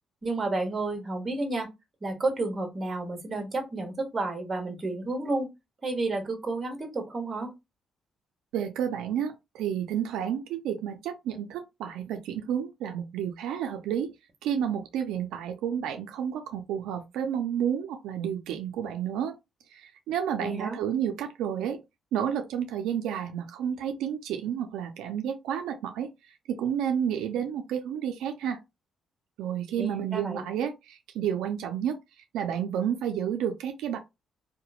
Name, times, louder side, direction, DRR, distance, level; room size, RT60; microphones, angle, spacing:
voice 1, 0.2-1.7 2.0-5.5 5.8-7.5 20.4-20.8 29.8-30.4, right 2 dB, 30° right, 1.1 m, -31 dB
voice 2, 8.5-14.1 14.4-19.3 19.7-21.8 22.1-26.1 26.5-28.6 29.4-32.0 32.3-34.0, right 9 dB, 90° right, 0.3 m, -30 dB
2.9 x 2.1 x 2.3 m
cardioid pair, 90°, 0 cm